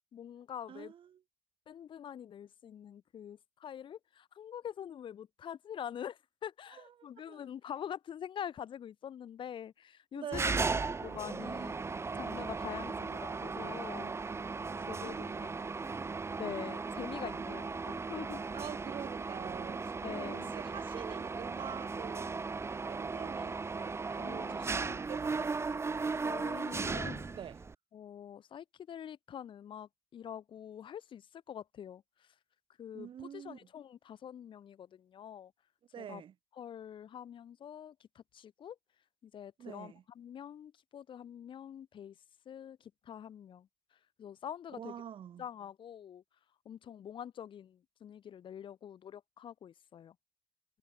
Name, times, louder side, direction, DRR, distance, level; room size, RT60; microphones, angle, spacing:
voice 1, 0.1-0.9 1.7-10.5 11.0-14.1 14.9-15.5 16.4-18.4 20.0-20.5 24.2-25.0 26.2-27.4 27.9-32.0 32.8-35.5 36.0-36.2 36.6-38.8 39.2-42.1 42.5-43.7 44.2-44.9 45.4-46.2 46.6-50.1, left 9 dB, 55° left, 2.8 m, -45 dB
voice 2, 0.7-1.2 6.8-7.5 10.1-10.8 15.0-15.4 18.5-22.5 22.9-25.5 27.3-27.6 32.9-33.7 35.9-36.3 39.6-40.0 44.8-45.4, right 9 dB, 55° right, 6.0 m, -46 dB
Mechanisms, 10.3-27.7, right 4 dB, 25° right, 1.3 m, -37 dB
supercardioid pair, 80°, 10 cm